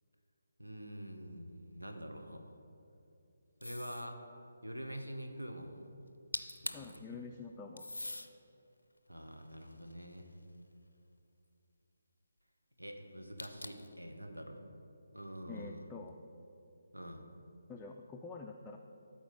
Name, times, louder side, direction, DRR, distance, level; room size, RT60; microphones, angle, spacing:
voice 1, 0.6-2.6 3.6-4.2 4.6-5.9 6.6-7.3 9.1-10.3 12.8-14.6 15.1-15.9 16.9-17.3, equal, 90° right, 4 dB, 0.9 m, -46 dB
sound 1, 3.6-4.1 6.1-6.2 6.3-7.0 7.8-8.3 9.0-10.4 13.4-13.9, left 2 dB, 80° left, 0.5 m, -43 dB
voice 2, 6.7-7.9 15.5-16.2 17.7-18.8, left 4 dB, 10° left, 0 dB, 0.3 m, -47 dB
13.0 x 4.3 x 3.8 m, 2.8 s
figure-of-eight pair, 145°, 0 cm